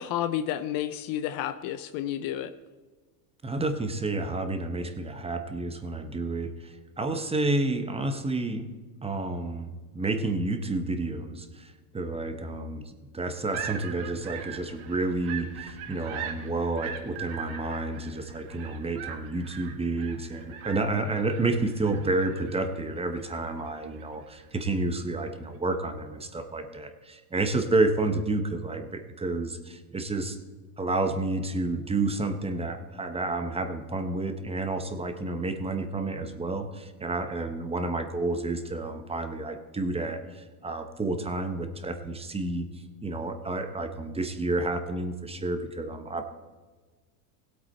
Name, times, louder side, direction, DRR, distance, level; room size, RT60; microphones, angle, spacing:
voice 1, 0.0-2.5, left 11 dB, 45° left, 12 dB, 0.6 m, -31 dB
voice 2, 3.4-8.7 9.0-30.4 30.8-42.7 43.0-46.3, right 2 dB, 10° right, 8 dB, 1.0 m, -30 dB
sound 1, 13.5-25.0, right 8 dB, 50° right, 1.9 m, -41 dB
17.0 x 8.3 x 4.3 m, 1.4 s
supercardioid pair, 115°, 49 cm